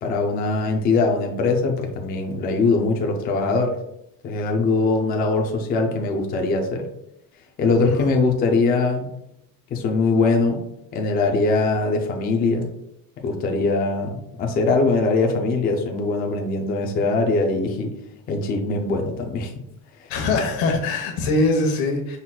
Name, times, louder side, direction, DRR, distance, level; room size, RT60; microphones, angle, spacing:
voice 1, 0.0-3.7 4.2-6.9 7.6-9.1 9.7-10.6 10.9-12.7 13.2-17.9 18.3-19.5 20.0-20.1, left 3 dB, 25° left, 2 dB, 0.4 m, -22 dB
voice 2, 7.8-8.1 20.1-22.2, left 2 dB, 90° left, 3 dB, 1.1 m, -22 dB
5.7 x 4.0 x 2.2 m, 0.82 s
cardioid pair, 180°, 35 cm